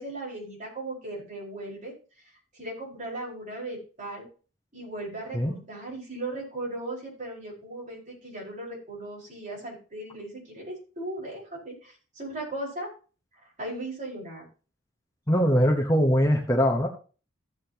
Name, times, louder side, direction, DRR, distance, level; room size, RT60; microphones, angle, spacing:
voice 1, 0.0-4.3 4.7-12.9 13.6-14.4, right 1 dB, 40° right, -3 dB, 5.1 m, -37 dB
voice 2, 15.3-16.9, equal, 15° left, 2 dB, 1.0 m, -22 dB
14.5 x 7.5 x 2.9 m, 0.36 s
head